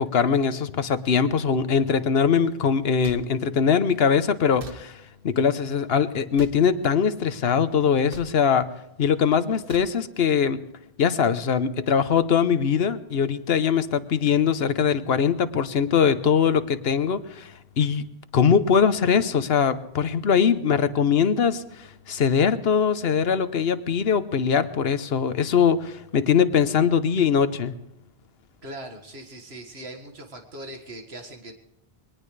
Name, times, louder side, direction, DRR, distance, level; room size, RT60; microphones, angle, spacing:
voice 1, 0.0-4.9 5.2-8.7 9.0-10.6 11.0-17.5 17.8-18.0 18.3-21.6 22.1-27.7, left 7 dB, 75° left, 12 dB, 1.1 m, -21 dB
sound 1, 3.0-3.2 4.6-4.8 6.3-6.6 8.1-8.3 9.7-9.9, right 4 dB, 60° right, 1.2 m, -40 dB
voice 2, 28.6-31.5, right 1 dB, 85° right, 3 dB, 2.1 m, -40 dB
22.0 x 19.0 x 3.3 m, 0.84 s
omnidirectional pair, 1.0 m